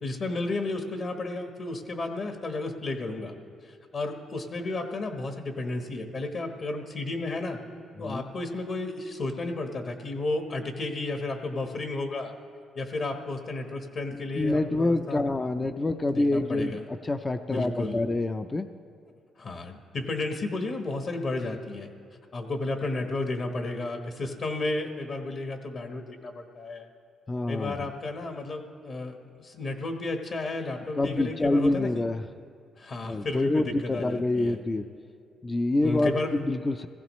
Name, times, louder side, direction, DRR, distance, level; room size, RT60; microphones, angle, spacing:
voice 1, 0.0-3.3 3.6-7.6 8.0-12.3 12.7-15.6 15.9-16.8 17.5-18.0 19.4-21.9 22.3-26.9 27.5-32.0 32.8-34.6 35.8-36.4, left 2 dB, 50° left, 5 dB, 1.2 m, -33 dB
voice 2, 14.1-16.8 17.0-18.7 27.3-27.9 31.0-32.2 33.0-34.9 35.4-36.9, left 2 dB, 25° left, 9 dB, 0.5 m, -27 dB
17.5 x 15.5 x 3.1 m, 2.3 s
cardioid pair, 90°, 0 cm